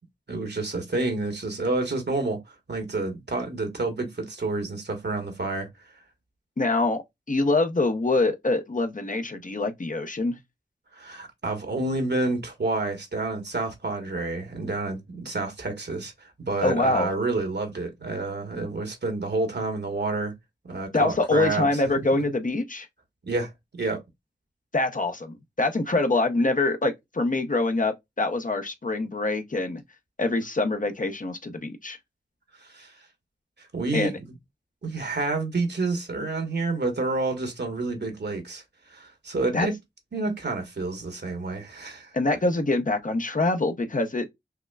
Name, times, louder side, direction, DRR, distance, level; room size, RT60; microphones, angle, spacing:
voice 1, 0.3-5.9 10.9-20.3 20.6-22.2 23.3-23.5 23.8-24.0 32.6-33.1 33.6-34.3 34.8-39.8 40.1-42.1, right 3 dB, 65° right, 1.3 m, -29 dB
voice 2, 6.6-10.4 16.6-17.1 20.9-22.9 24.7-29.8 30.2-32.0 33.9-34.2 39.5-39.7 42.1-44.3, left 2 dB, 45° left, 0.8 m, -25 dB
5.7 x 2.1 x 2.2 m
wide cardioid pair, 45°, 19 cm